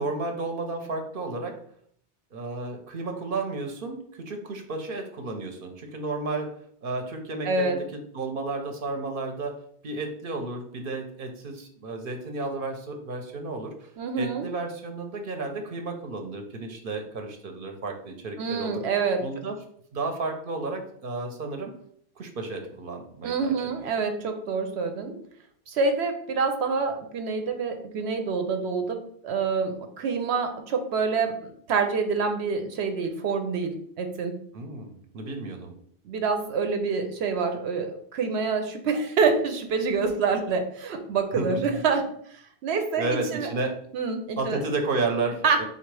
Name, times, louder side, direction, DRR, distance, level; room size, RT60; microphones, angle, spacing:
voice 1, 0.0-1.6 2.3-6.5 6.8-9.5 9.8-13.9 14.2-18.8 19.2-19.6 19.9-21.7 22.2-23.7 34.5-35.8 41.3-41.8 43.0-43.8 44.4-45.6, right 3 dB, 60° right, 4 dB, 0.8 m, -32 dB
voice 2, 7.4-7.8 14.0-14.5 18.4-19.2 23.2-25.2 25.7-34.4 36.0-42.0 42.6-43.5 43.9-44.6 45.4-45.6, right 4 dB, 85° right, 6 dB, 0.9 m, -27 dB
3.9 x 2.4 x 4.6 m, 0.64 s
omnidirectional pair, 1.1 m